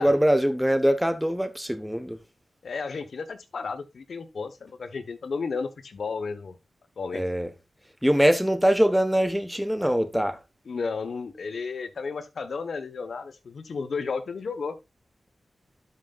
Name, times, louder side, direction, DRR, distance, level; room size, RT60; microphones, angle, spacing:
voice 1, 0.0-2.2 7.1-7.5 8.0-10.4, equal, 5° right, 1.2 m, -23 dB
voice 2, 2.6-6.6 7.0-7.2 10.7-14.7, left 4 dB, 80° left, 1.2 m, -33 dB
12.5 x 5.8 x 2.5 m
cardioid pair, 60°, 0 cm